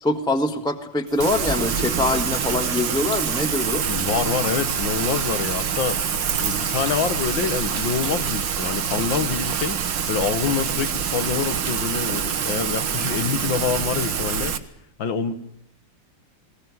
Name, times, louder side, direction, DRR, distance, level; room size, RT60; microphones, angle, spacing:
voice 1, 0.0-3.9, left 2 dB, 5° left, 7 dB, 1.2 m, -24 dB
sound 1, 1.1-8.9, right 3 dB, 30° right, 1.5 m, -36 dB
Rain, 1.2-14.6, right 7 dB, 80° right, 2.0 m, -26 dB
voice 2, 3.9-6.0 6.4-9.8 10.1-14.6 15.0-15.3, left 6 dB, 90° left, 11 dB, 2.2 m, -26 dB
21.0 x 18.0 x 9.5 m, 0.69 s
omnidirectional pair, 2.0 m